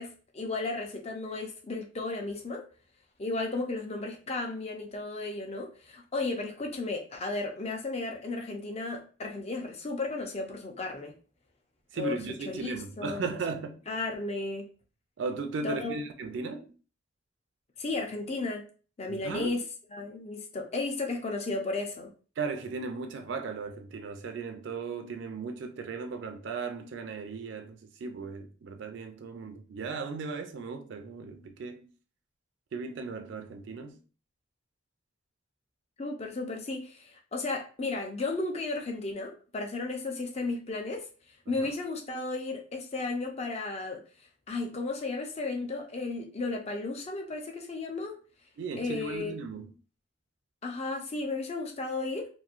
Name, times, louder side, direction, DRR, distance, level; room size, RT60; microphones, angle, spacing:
voice 1, 0.0-2.6 3.2-11.1 11.9-12.2 12.5-13.2 13.9-14.6 15.6-16.0 17.8-18.6 19.0-19.6 19.9-22.1 36.0-41.1 41.5-44.0 44.5-48.2 48.7-49.4 50.6-52.3, left 3 dB, 35° left, 0.5 m, -34 dB
voice 2, 11.9-13.8 15.2-16.8 19.1-19.6 22.4-31.9 32.7-34.0 41.5-41.7 48.6-49.7, right 4 dB, 65° right, 0.3 m, -36 dB
2.9 x 2.6 x 2.4 m
head